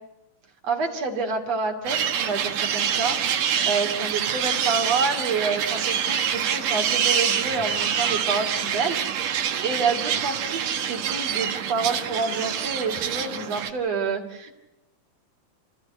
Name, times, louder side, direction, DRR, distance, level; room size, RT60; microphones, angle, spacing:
voice 1, 0.6-3.2 3.7-9.3 9.6-14.5, right 4 dB, 45° right, 5 dB, 3.5 m, -28 dB
sound 1, 1.9-13.7, right 8 dB, 65° right, 3.0 m, -26 dB
29.5 x 15.5 x 9.6 m, 0.93 s
omnidirectional pair, 4.2 m